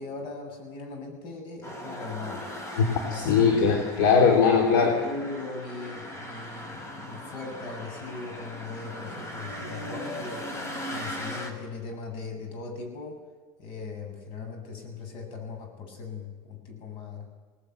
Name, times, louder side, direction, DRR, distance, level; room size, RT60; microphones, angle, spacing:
voice 1, 0.0-2.4 3.0-3.7 4.8-10.4 10.9-13.2 13.6-17.3, left 4 dB, 60° left, 4 dB, 7.6 m, -39 dB
sound 1, 1.6-11.5, equal, 30° left, 4.8 m, -39 dB
voice 2, 2.8-4.9, left 5 dB, 85° left, 1 dB, 3.8 m, -20 dB
21.5 x 18.5 x 9.4 m, 1.3 s
supercardioid pair, 115°, 10 cm